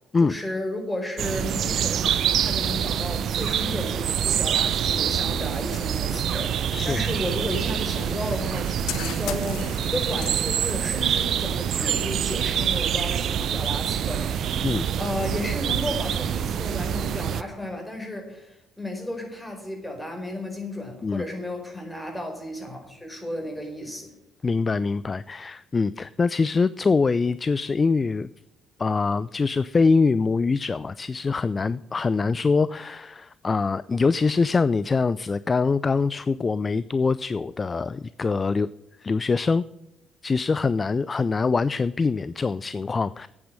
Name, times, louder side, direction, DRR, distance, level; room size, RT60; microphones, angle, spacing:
voice 1, 0.2-14.7 15.0-24.1, left 1 dB, 15° left, 2 dB, 4.7 m, -33 dB
sound 1, 1.2-17.4, right 9 dB, 60° right, 0.5 m, -26 dB
sound 2, 4.8-12.7, left 11 dB, 70° left, 0.7 m, -41 dB
voice 2, 24.4-28.3 28.8-38.7 39.0-39.6 40.2-43.3, left 4 dB, 35° left, 17 dB, 0.3 m, -24 dB
8.7 x 8.5 x 7.5 m, 0.86 s
hypercardioid pair, 45°, 0 cm